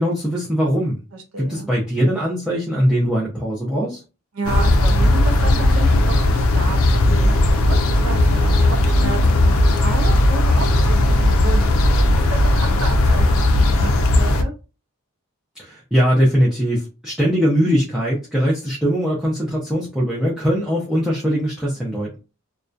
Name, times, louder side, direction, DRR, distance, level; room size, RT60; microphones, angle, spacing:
voice 1, 0.0-1.0 1.4-4.0 15.6-22.2, equal, 5° right, -6 dB, 0.4 m, -20 dB
voice 2, 1.1-1.7 4.3-14.5, right 2 dB, 75° right, 4 dB, 0.5 m, -32 dB
sound 1, 4.4-14.4, left 1 dB, 70° left, 0.4 m, -16 dB
2.6 x 2.1 x 2.3 m, 0.31 s
head